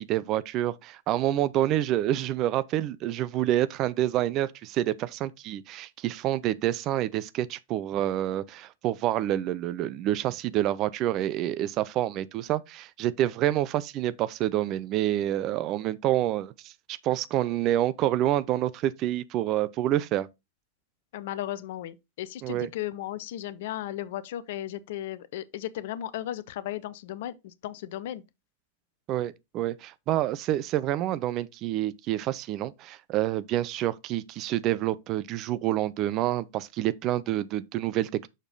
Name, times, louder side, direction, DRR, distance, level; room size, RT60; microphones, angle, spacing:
voice 1, 0.0-20.3 22.4-22.7 29.1-38.3, right 13 dB, 35° right, 0.4 m, -28 dB
voice 2, 21.1-28.2, left 13 dB, 55° left, 0.6 m, -35 dB
6.5 x 4.8 x 3.9 m
figure-of-eight pair, 90°, 0 cm